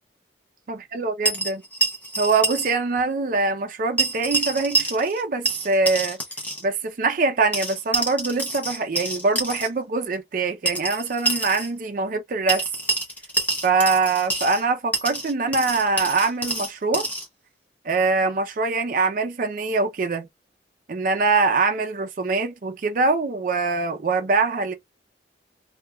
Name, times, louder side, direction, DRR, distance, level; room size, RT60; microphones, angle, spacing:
voice 1, 0.7-1.6 2.2-6.2 6.6-12.7 13.6-17.1 17.8-20.3 20.9-24.7, right 4 dB, 45° right, 0.4 m, -23 dB
sound 1, 1.2-2.7 3.0-3.1 4.0-5.2 5.5-6.6 7.5-9.7 10.7-11.7 12.5-14.6 14.9-17.3, right 2 dB, 10° left, 0.7 m, -27 dB
2.9 x 2.2 x 2.2 m
head